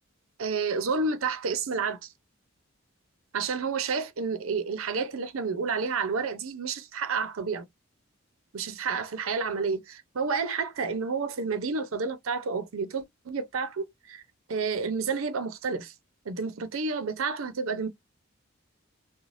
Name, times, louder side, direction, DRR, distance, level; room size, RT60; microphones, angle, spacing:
voice 1, 0.4-2.1 3.3-7.7 8.5-14.2 14.5-15.9 16.3-17.9, right 5 dB, 90° right, 0.6 m, -30 dB
3.1 x 2.2 x 2.5 m
head